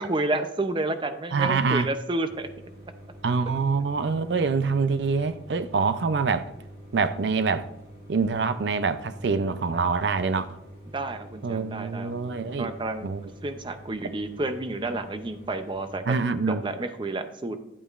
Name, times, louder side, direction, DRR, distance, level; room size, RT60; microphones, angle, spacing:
voice 1, 0.0-2.5 10.9-12.1 12.6-13.1 13.4-16.2 16.5-17.6, right 2 dB, 30° right, 0.5 m, -30 dB
voice 2, 1.3-1.9 3.2-6.4 6.9-7.7 8.1-10.6 11.4-12.7 13.0-13.2 16.1-16.6, right 4 dB, 80° right, 0.5 m, -25 dB
sound 1, 2.3-16.0, right 1 dB, 60° right, 3.7 m, -46 dB
11.0 x 8.3 x 2.4 m
head